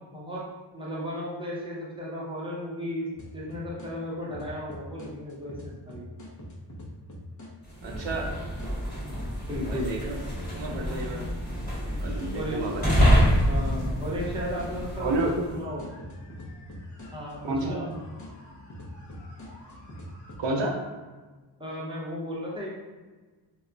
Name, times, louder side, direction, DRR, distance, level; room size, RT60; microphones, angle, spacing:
voice 1, 0.1-0.5 0.7-3.1 3.3-6.1 9.5-9.9 12.3-12.6 13.5-15.9 17.1-17.9 21.6-22.7, equal, 10° right, -6 dB, 0.6 m, -34 dB
sound 1, 3.1-3.9 4.3-8.7 9.1-20.4, left 1 dB, 40° left, 0.6 m, -43 dB
sound 2, 7.7-15.5, equal, 20° left, 1.3 m, -27 dB
voice 2, 7.8-8.3 9.7-10.2 10.5-11.3 12.0-12.9 15.0-15.4 17.4-17.8 20.4-20.8, right 2 dB, 70° right, 0 dB, 0.6 m, -30 dB
2.3 x 2.1 x 3.7 m, 1.3 s
wide cardioid pair, 155°, 45 cm